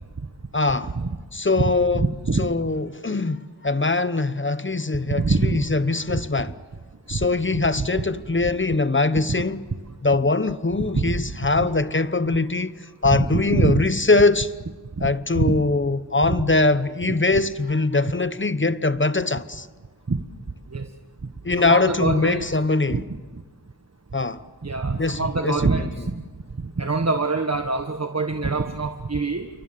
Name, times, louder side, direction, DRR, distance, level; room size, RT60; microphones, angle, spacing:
voice 1, 0.5-0.9 1.3-2.0 2.4-6.6 7.1-9.7 10.0-14.5 15.0-19.7 21.4-23.0 24.1-24.4 25.0-26.1, left 3 dB, 30° left, 1.0 m, -22 dB
voice 2, 1.9-2.5 5.1-5.6 6.1-6.2 7.1-7.2 7.5-7.9 10.8-11.2 13.3-13.8 15.0-15.6 16.3-16.4 20.1-20.2 20.7-20.9 21.6-22.4 22.9-23.0 24.6-26.1 26.8-29.5, right 3 dB, 40° right, 1.5 m, -24 dB
28.5 x 23.5 x 7.6 m
cardioid pair, 45°, 39 cm